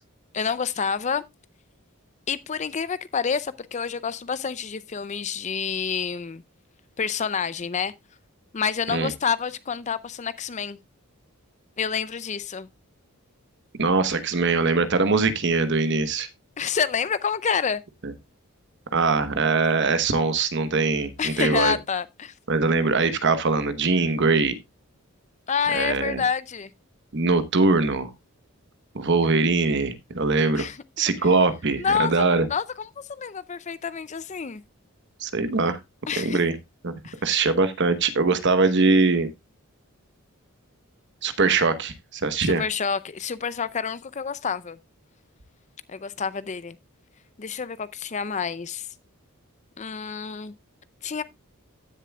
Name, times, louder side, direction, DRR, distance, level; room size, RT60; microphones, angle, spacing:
voice 1, 0.3-1.2 2.3-6.4 7.0-7.9 8.5-10.8 11.8-12.7 16.6-17.8 21.2-22.3 25.5-26.7 30.5-30.8 31.2-31.3 31.8-34.6 36.1-36.4 37.0-37.2 42.4-44.8 45.9-46.8 47.4-48.9 49.8-50.5 51.0-51.2, left 6 dB, 30° left, 0.5 m, -28 dB
voice 2, 13.7-16.3 18.0-18.1 18.9-21.8 22.5-24.6 25.7-26.2 27.1-28.1 28.9-30.7 31.0-32.5 35.2-35.8 36.2-36.5 36.8-36.9 37.2-39.3 41.2-42.6, right 3 dB, 55° right, 1.0 m, -22 dB
15.0 x 6.9 x 2.3 m
head